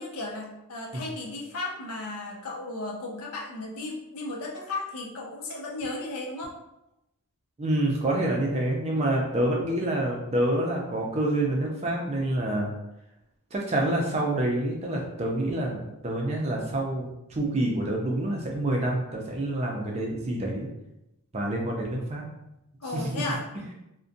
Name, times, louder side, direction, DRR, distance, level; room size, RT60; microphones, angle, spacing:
voice 1, 0.0-6.5 8.9-9.5 22.8-23.5, left 2 dB, 85° left, -1 dB, 0.6 m, -35 dB
voice 2, 7.6-12.7 13.5-20.7 21.3-22.2 22.9-23.2, right 1 dB, 30° right, -1 dB, 0.4 m, -27 dB
2.5 x 2.1 x 2.5 m, 0.88 s
head